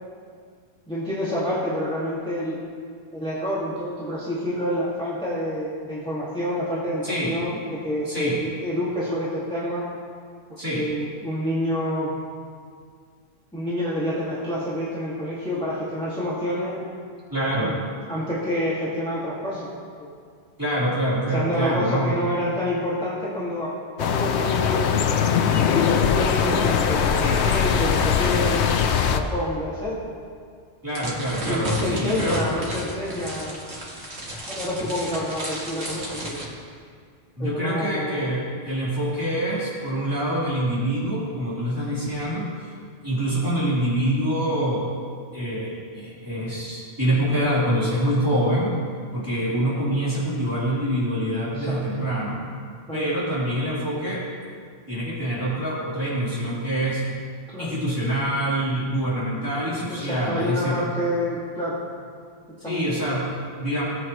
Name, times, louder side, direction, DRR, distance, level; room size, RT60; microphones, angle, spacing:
voice 1, 0.9-2.6 3.1-9.8 10.7-12.1 13.5-16.8 17.6-17.7 18.1-20.1 21.3-24.8 26.0-28.6 29.1-30.0 31.4-33.6 34.5-36.4 37.4-38.2 51.5-52.1 52.9-53.1 57.5-57.7 59.9-61.8 62.6-62.9, equal, 5° left, -9 dB, 2.0 m, -28 dB
voice 2, 7.0-7.4 8.1-8.4 10.6-10.9 17.3-17.8 20.6-22.2 30.8-32.4 37.4-42.5 43.0-44.9 45.3-48.7 49.1-52.4 52.9-54.2 54.9-57.1 57.6-60.8 62.6-63.8, right 1 dB, 20° right, -9 dB, 3.4 m, -25 dB
sound 1, 24.0-29.2, left 7 dB, 85° left, 1.0 m, -21 dB
sound 2, 30.9-36.4, equal, 80° right, 2.3 m, -32 dB
18.5 x 8.2 x 3.1 m, 2.1 s
omnidirectional pair, 1.1 m